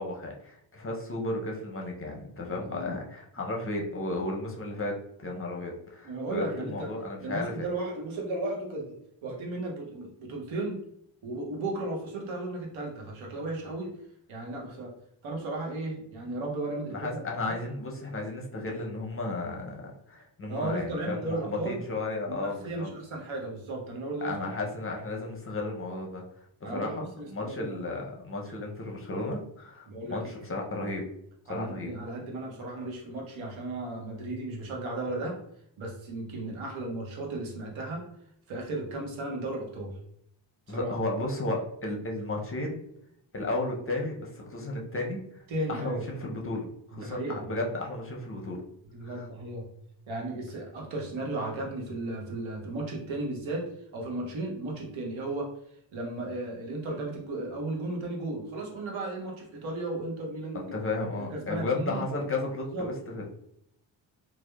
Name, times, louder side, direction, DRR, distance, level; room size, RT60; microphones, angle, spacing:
voice 1, 0.0-7.5 16.9-22.9 24.2-26.2 26.6-31.0 31.5-31.9 40.7-42.8 43.3-45.4 45.7-48.6 49.0-49.3 60.7-63.3, left 2 dB, 30° left, 0 dB, 0.5 m, -34 dB
voice 2, 2.5-2.9 6.0-6.9 7.2-9.0 9.2-10.8 11.2-13.9 14.3-14.9 15.2-17.2 17.5-17.6 20.5-21.8 22.3-24.5 26.6-28.0 29.9-30.2 31.5-35.4 35.8-38.1 38.5-39.9 40.7-40.9 45.5-46.0 46.9-47.4 48.9-49.7 50.1-55.5 55.9-60.7 61.1-62.0 62.7-62.9, right 2 dB, 80° right, -1 dB, 0.8 m, -35 dB
2.7 x 2.1 x 2.2 m, 0.72 s
cardioid pair, 65°, 47 cm